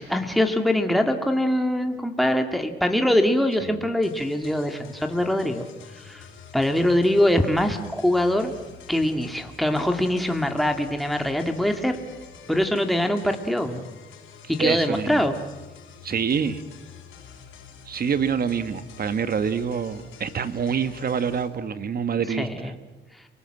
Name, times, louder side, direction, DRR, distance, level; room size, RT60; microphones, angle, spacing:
voice 1, 0.0-5.6 6.0-6.2 6.5-8.5 8.9-12.0 12.5-13.8 14.5-15.4 22.4-22.7, left 1 dB, ahead, 5 dB, 2.1 m, -23 dB
sound 1, 4.0-21.5, left 6 dB, 80° left, 5.3 m, -47 dB
voice 2, 14.6-15.3 16.0-16.6 17.9-22.7, right 7 dB, 50° right, 11 dB, 1.7 m, -26 dB
30.0 x 19.0 x 7.8 m, 1.1 s
cardioid pair, 90°, 20 cm